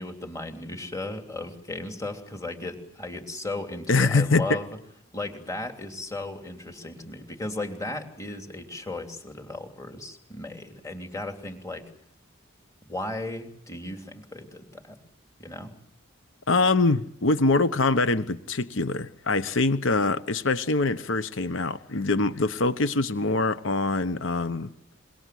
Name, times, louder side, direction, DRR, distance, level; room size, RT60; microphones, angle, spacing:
voice 1, 0.0-4.8 5.1-11.8 12.9-15.0 15.4-15.8, left 2 dB, 15° left, 3.2 m, -36 dB
voice 2, 3.9-4.6 16.5-24.7, left 3 dB, 75° left, 1.1 m, -24 dB
26.5 x 22.5 x 7.8 m
head